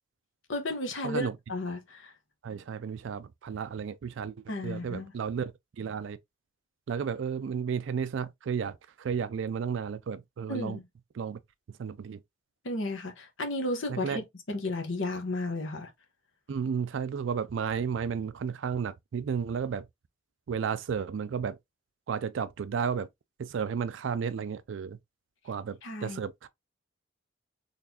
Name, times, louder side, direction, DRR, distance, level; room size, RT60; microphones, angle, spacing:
voice 1, 0.5-2.1 4.5-5.1 10.5-10.9 12.6-15.9 25.8-26.2, left 2 dB, 70° left, 1.1 m, -33 dB
voice 2, 2.4-4.3 4.6-6.2 6.9-10.8 11.2-11.4 11.8-12.2 13.9-14.2 16.5-19.8 20.5-21.6 22.1-23.1 23.4-25.0 25.4-26.5, right 6 dB, 70° right, 0.3 m, -33 dB
4.1 x 3.3 x 2.8 m
head